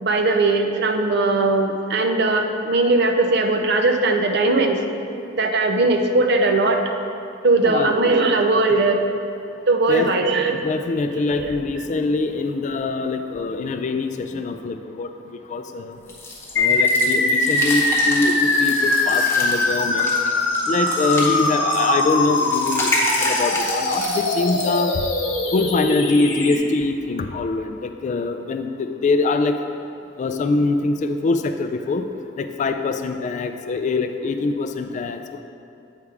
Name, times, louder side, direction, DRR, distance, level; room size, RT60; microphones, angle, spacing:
voice 1, 0.0-4.8 5.3-6.8 7.4-9.0 9.7-10.7 11.4-11.5, right 2 dB, 60° right, 5 dB, 0.5 m, -19 dB
voice 2, 7.6-7.9 9.9-15.1 15.5-16.0 16.6-20.1 20.7-22.9 23.2-24.9 25.5-29.5 30.2-32.0 32.4-35.4, left 3 dB, 40° left, 7 dB, 0.3 m, -23 dB
sound 1, 16.1-24.8, left 1 dB, 15° left, 1.0 m, -29 dB
sound 2, 16.6-26.6, left 2 dB, 75° left, 0.9 m, -21 dB
8.2 x 3.4 x 4.7 m, 2.5 s
head